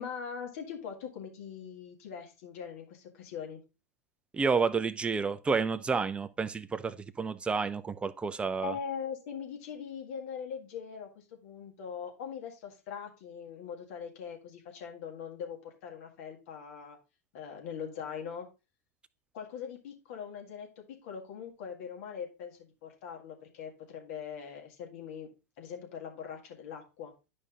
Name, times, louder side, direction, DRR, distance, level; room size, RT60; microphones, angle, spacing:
voice 1, 0.0-3.6 8.6-17.0 17.3-18.5 19.3-25.3 25.6-27.1, left 7 dB, 55° left, 1.8 m, -41 dB
voice 2, 4.3-8.7, right 5 dB, 10° right, 0.4 m, -30 dB
11.0 x 5.2 x 2.5 m
figure-of-eight pair, 95°, 9 cm